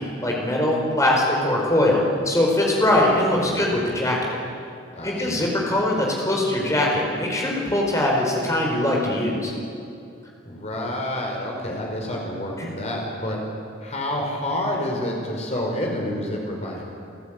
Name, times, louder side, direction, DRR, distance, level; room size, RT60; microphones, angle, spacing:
voice 1, 0.2-4.4 5.0-9.5 12.6-12.7, left 1 dB, 15° left, -2 dB, 4.7 m, -22 dB
voice 2, 4.9-5.4 10.4-13.4 13.8-16.8, left 1 dB, 35° left, 0 dB, 5.0 m, -28 dB
29.0 x 14.0 x 9.1 m, 2.5 s
head